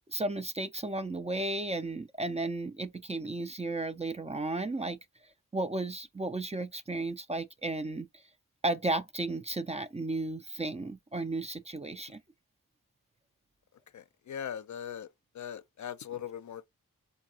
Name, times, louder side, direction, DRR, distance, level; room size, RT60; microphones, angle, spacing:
voice 1, 0.1-5.0 5.5-8.1 8.6-12.2, right 2 dB, 20° right, 0.5 m, -34 dB
voice 2, 13.9-15.1 15.3-16.7, left 9 dB, 55° left, 0.5 m, -40 dB
3.9 x 2.6 x 2.8 m
cardioid pair, 40°, 34 cm